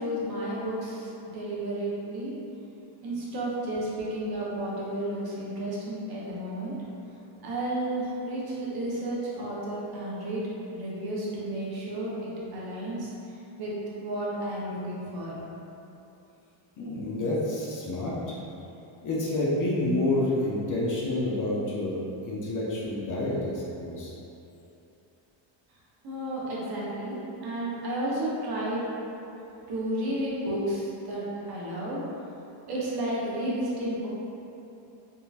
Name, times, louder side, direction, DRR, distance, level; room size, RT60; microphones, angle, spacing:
voice 1, 0.0-2.3 3.0-6.8 7.4-13.1 13.6-15.4 26.0-28.8 29.7-32.0 32.7-34.1, right 1 dB, 50° right, -7 dB, 0.9 m, -32 dB
voice 2, 16.8-18.4 19.0-24.1, left 1 dB, 40° left, -5 dB, 0.6 m, -29 dB
3.7 x 2.8 x 2.4 m, 2.9 s
cardioid pair, 130°, 48 cm